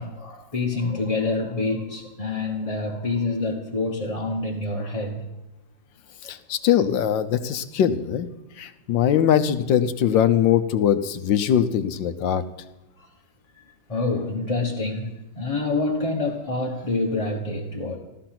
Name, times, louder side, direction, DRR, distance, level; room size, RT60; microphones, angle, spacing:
voice 1, 0.0-5.3 13.0-13.1 13.6-13.7 13.9-18.0, left 3 dB, 20° left, -2 dB, 1.2 m, -27 dB
voice 2, 6.2-8.3 8.6-12.4, left 9 dB, 75° left, 11 dB, 1.5 m, -21 dB
15.5 x 13.5 x 5.9 m, 0.98 s
omnidirectional pair, 2.1 m